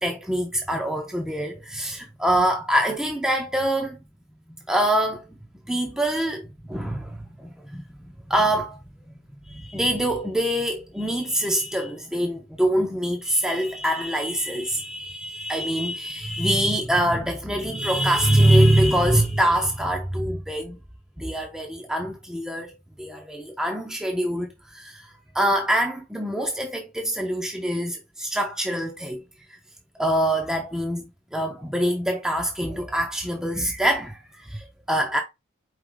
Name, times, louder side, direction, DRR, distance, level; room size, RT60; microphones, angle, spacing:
voice 1, 0.0-4.0 4.5-5.4 5.7-7.8 8.3-8.8 9.5-20.8 21.2-22.7 23.0-25.1 25.3-29.2 30.0-35.2, right 1 dB, 5° right, 0.5 m, -24 dB
4.8 x 2.8 x 3.7 m
head